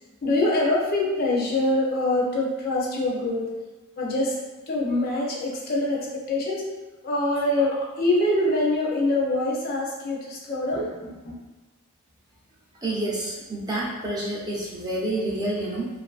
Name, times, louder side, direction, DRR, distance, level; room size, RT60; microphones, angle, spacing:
voice 1, 0.2-3.5 4.0-4.4 4.7-6.7 7.0-11.3, left 2 dB, 45° left, -3 dB, 0.5 m, -24 dB
voice 2, 12.8-15.9, right 1 dB, 20° right, -5 dB, 0.4 m, -28 dB
2.5 x 2.4 x 2.3 m, 1.2 s
head